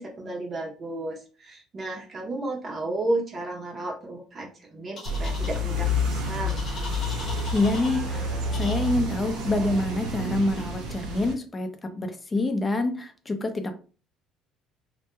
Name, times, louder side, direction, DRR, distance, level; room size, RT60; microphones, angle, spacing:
voice 1, 0.0-6.6, right 2 dB, 35° right, 0 dB, 0.6 m, -33 dB
sound 1, 5.0-5.6 6.5-8.0 8.5-8.9, left 3 dB, 40° left, 0.8 m, -39 dB
sound 2, 5.1-11.3, left 1 dB, 85° right, 0.9 m, -29 dB
voice 2, 7.5-13.7, left 2 dB, 20° left, 7 dB, 0.4 m, -27 dB
2.2 x 2.2 x 2.9 m, 0.37 s
cardioid pair, 115°, 0 cm